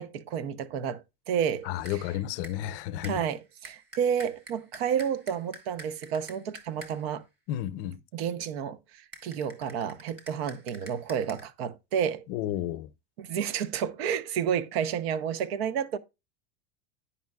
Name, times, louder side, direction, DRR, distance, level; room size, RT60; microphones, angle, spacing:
voice 1, 0.0-2.0 3.0-7.2 8.1-8.8 9.2-12.2 13.2-16.0, right 8 dB, 75° right, 0.7 m, -30 dB
sound 1, 1.4-1.6 1.8-2.1 2.4-2.7 3.0-7.2 9.1-11.4, right 1 dB, 30° right, 1.4 m, -48 dB
voice 2, 1.6-3.2 7.5-8.0 12.3-12.9, left 12 dB, 60° left, 0.6 m, -32 dB
10.0 x 5.5 x 2.3 m
supercardioid pair, 130°, 31 cm